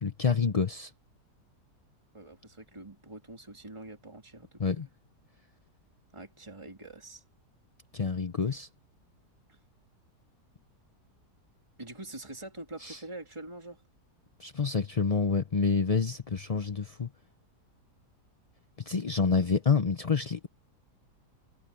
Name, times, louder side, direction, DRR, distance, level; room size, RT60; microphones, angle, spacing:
voice 1, 0.0-0.9 4.6-4.9 7.9-8.7 12.8-13.0 14.4-17.1 18.8-20.5, left 5 dB, 40° left, 0.5 m, -28 dB
voice 2, 2.1-4.9 6.1-7.2 9.5-9.6 11.8-13.8 19.3-19.4, right 2 dB, 15° right, 3.3 m, -45 dB
omnidirectional pair, 1.8 m